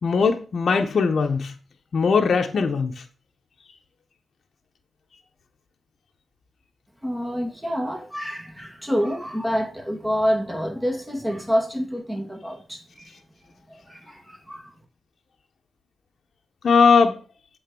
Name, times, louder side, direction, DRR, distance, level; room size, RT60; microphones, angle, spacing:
voice 1, 0.0-1.5 1.9-2.9 16.6-17.2, left 5 dB, 65° left, 1.0 m, -19 dB
voice 2, 7.0-13.1 13.7-14.7, equal, 10° right, 2.1 m, -27 dB
7.9 x 3.9 x 6.8 m
cardioid pair, 75°, 0 cm